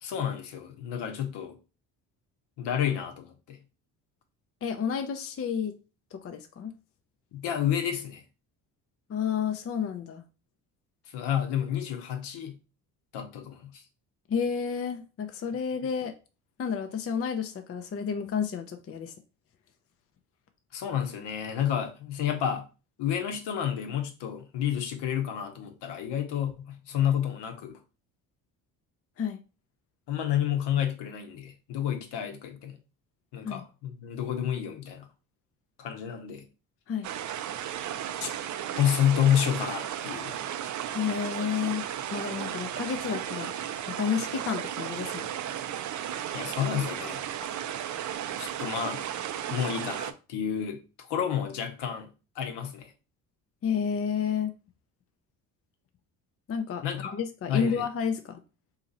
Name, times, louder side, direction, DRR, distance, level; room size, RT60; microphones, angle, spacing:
voice 1, 0.0-1.6 2.6-3.6 7.3-8.2 11.1-12.6 13.1-13.8 20.7-22.7 23.0-27.8 30.1-32.8 33.3-35.1 35.8-36.5 38.2-38.3 38.8-40.4 46.3-47.2 48.4-49.0 49.5-52.1 52.4-52.9 56.8-57.2 57.5-57.9, left 9 dB, 65° left, 0.9 m, -30 dB
voice 2, 4.6-5.8 6.1-6.7 9.1-10.2 14.3-16.1 16.6-19.1 29.2-29.4 33.4-33.6 36.9-37.1 40.9-41.8 42.1-43.5 43.9-45.3 53.6-54.5 56.5-56.8 57.1-58.4, left 7 dB, 30° left, 0.5 m, -30 dB
sound 1, 37.0-50.1, right 10 dB, 45° right, 0.4 m, -34 dB
2.8 x 2.6 x 4.0 m
supercardioid pair, 65°, 45 cm